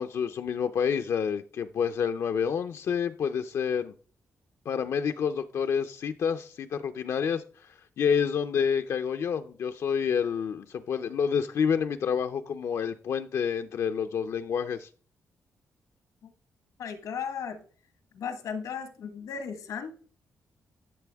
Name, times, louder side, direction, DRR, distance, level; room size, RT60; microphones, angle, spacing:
voice 1, 0.0-3.9 4.7-7.7 8.0-14.9, left 7 dB, 60° left, 0.5 m, -28 dB
voice 2, 16.8-17.6 18.1-19.9, left 6 dB, 85° left, 1.5 m, -36 dB
11.5 x 6.9 x 3.4 m
wide cardioid pair, 140°, 6 cm